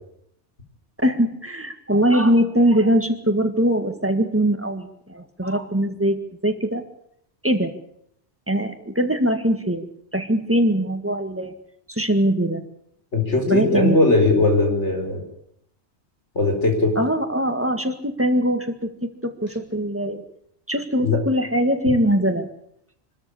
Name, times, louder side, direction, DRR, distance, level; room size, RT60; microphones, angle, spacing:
voice 1, 1.0-6.8 7.4-7.7 8.5-9.9 10.1-11.5 11.9-12.6 13.5-14.0 17.0-18.9 19.2-20.2 20.7-22.5, right 1 dB, 10° right, 6 dB, 1.9 m, -21 dB
voice 2, 13.1-15.2 16.3-16.9 21.0-21.2, left 2 dB, 85° left, 3 dB, 5.0 m, -19 dB
25.0 x 13.0 x 8.6 m, 0.73 s
omnidirectional pair, 1.2 m